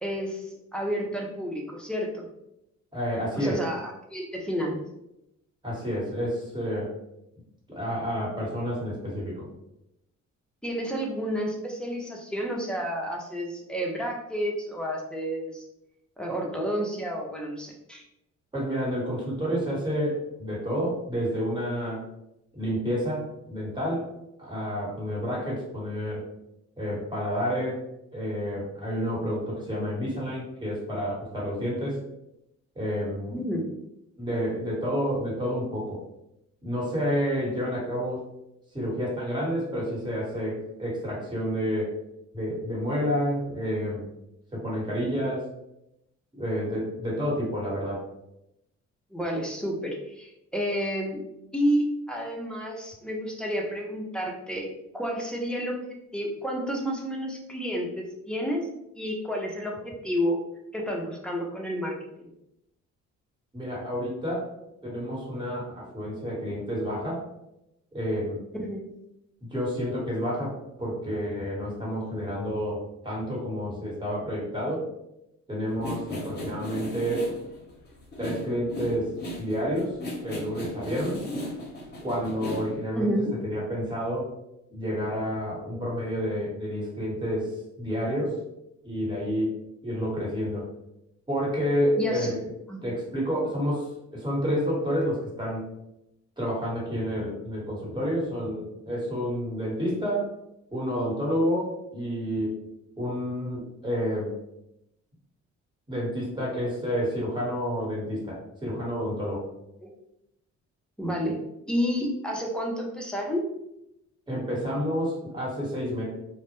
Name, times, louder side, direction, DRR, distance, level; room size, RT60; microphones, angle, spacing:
voice 1, 0.0-2.3 3.4-4.8 10.6-15.6 16.2-18.0 33.3-33.7 49.1-51.2 51.5-54.7 54.9-55.8 56.1-58.7 59.0-60.4 60.7-62.3 68.6-68.9 82.9-83.3 92.0-92.3 92.7-92.8 109.8-109.9 111.0-113.5, equal, 5° left, -1 dB, 0.5 m, -30 dB
voice 2, 2.9-3.6 5.6-6.9 7.7-9.5 18.5-22.0 22.5-24.1 24.4-26.2 26.8-27.8 28.1-32.0 32.7-33.4 34.2-36.0 36.6-38.2 38.7-41.9 42.3-44.0 44.5-45.5 46.3-48.0 63.5-64.5 64.8-67.2 67.9-68.4 69.5-74.9 75.5-77.3 78.2-79.1 79.4-80.0 80.2-81.2 82.0-83.1 83.4-84.3 84.7-88.4 88.8-89.6 89.8-90.6 91.3-92.4 92.8-95.7 96.4-100.3 100.7-102.6 103.0-104.3 105.9-109.5 114.3-116.0, equal, 15° right, -5 dB, 1.2 m, -29 dB
sound 1, 75.7-82.8, left 1 dB, 35° left, 0.9 m, -36 dB
2.1 x 2.0 x 2.9 m, 0.84 s
cardioid pair, 90°, 30 cm